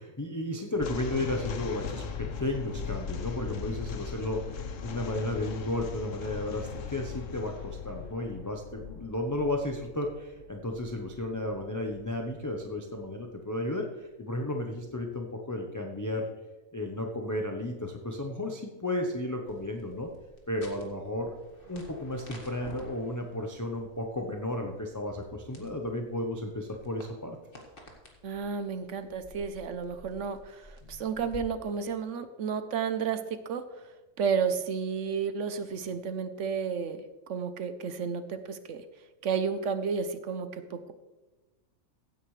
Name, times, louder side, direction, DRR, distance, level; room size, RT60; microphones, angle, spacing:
voice 1, 0.0-16.3 16.7-20.1 20.5-21.3 21.7-27.4, left 1 dB, 15° left, 1 dB, 0.6 m, -33 dB
sound 1, 0.8-12.1, left 6 dB, 60° left, 1.2 m, -39 dB
sound 2, 19.5-31.4, left 1 dB, 35° left, 2.0 m, -52 dB
voice 2, 28.2-33.9 34.2-38.8 39.2-40.9, right 6 dB, 60° right, 10 dB, 1.0 m, -32 dB
15.5 x 9.2 x 3.2 m, 1.1 s
omnidirectional pair, 1.6 m